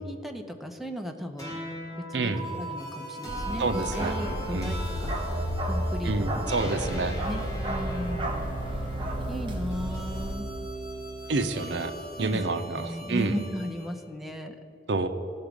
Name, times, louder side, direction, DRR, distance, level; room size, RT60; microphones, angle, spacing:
voice 1, 0.0-1.6 2.1-2.3 2.6-5.2 5.7-6.7 7.2-7.4 7.7-8.6 9.3-10.5 12.2-12.4 12.7-14.6, equal, ahead, 4 dB, 0.6 m, -36 dB
sound 1, 1.4-13.9, right 1 dB, 20° left, 2.3 m, -37 dB
Bark, 3.3-10.3, equal, 30° right, 1.0 m, -32 dB
voice 2, 3.6-4.2 4.5-4.7 6.0-7.1 11.3-11.9 12.2-13.4 14.9-15.1, right 3 dB, 70° right, 9 dB, 0.6 m, -28 dB
16.0 x 5.9 x 5.1 m, 2.8 s
head